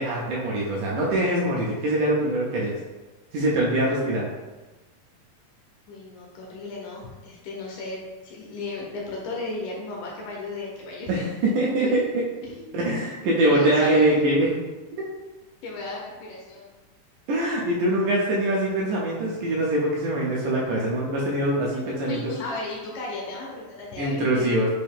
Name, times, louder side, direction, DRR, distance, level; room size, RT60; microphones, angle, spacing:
voice 1, 0.0-2.7 3.3-4.3 11.1-12.2 12.7-14.5 17.3-22.3 24.0-24.7, right 1 dB, 80° right, -4 dB, 1.9 m, -23 dB
voice 2, 5.9-11.2 11.8-12.0 12.4-12.5 13.4-14.1 15.6-16.7 22.1-24.5, left 3 dB, 75° left, -2 dB, 2.1 m, -35 dB
5.5 x 2.6 x 3.4 m, 1.2 s
omnidirectional pair, 4.1 m